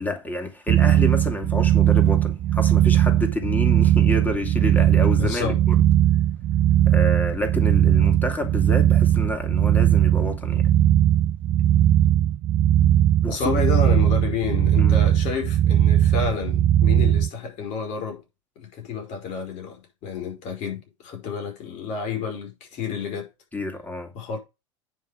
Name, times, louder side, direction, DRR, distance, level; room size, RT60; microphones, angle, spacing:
voice 1, 0.0-5.8 6.9-10.7 13.2-13.4 14.8-15.1 23.5-24.1, left 1 dB, 10° left, 2.5 m, -29 dB
sound 1, 0.7-17.3, right 11 dB, 40° right, 0.7 m, -19 dB
voice 2, 5.2-5.6 13.3-18.2 18.6-23.3 24.1-24.4, left 6 dB, 50° left, 4.9 m, -30 dB
9.5 x 5.6 x 5.0 m
hypercardioid pair, 85°, 16 cm